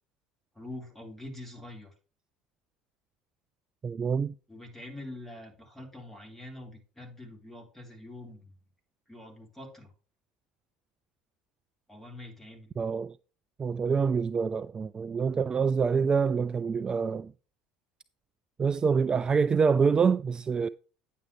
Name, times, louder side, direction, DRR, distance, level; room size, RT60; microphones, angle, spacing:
voice 1, 0.6-1.9 4.5-8.5 9.1-9.9 11.9-12.7, left 1 dB, 10° left, 3.7 m, -45 dB
voice 2, 3.8-4.3 12.8-13.2 13.6-17.3 18.6-20.7, right 5 dB, 25° right, 0.3 m, -26 dB
9.5 x 7.5 x 3.1 m
hypercardioid pair, 70°, 3 cm